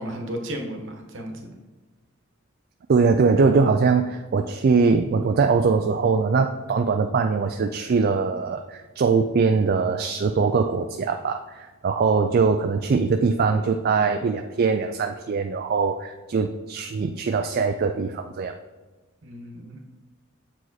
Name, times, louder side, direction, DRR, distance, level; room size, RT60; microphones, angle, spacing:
voice 1, 0.0-1.5 19.2-19.8, equal, 65° right, 3 dB, 1.2 m, -34 dB
voice 2, 2.9-18.6, right 4 dB, 45° right, 6 dB, 0.4 m, -22 dB
7.5 x 5.0 x 4.0 m, 1.3 s
head